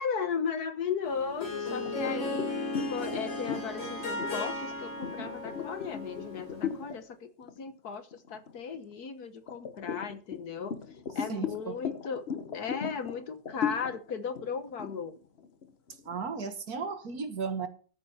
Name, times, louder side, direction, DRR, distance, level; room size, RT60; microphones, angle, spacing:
voice 1, 0.0-2.5 2.9-10.7 11.1-12.2 12.5-15.2, left 6 dB, 60° left, 1.6 m, -36 dB
Harp, 1.0-6.8, left 2 dB, 80° left, 4.7 m, -36 dB
sound 1, 1.9-7.0 7.4-7.7 8.1-8.9 9.5-16.2, left 7 dB, 45° left, 1.0 m, -37 dB
voice 2, 11.3-11.8 16.1-17.7, right 5 dB, 55° right, 1.9 m, -35 dB
14.0 x 8.7 x 4.2 m
omnidirectional pair, 2.0 m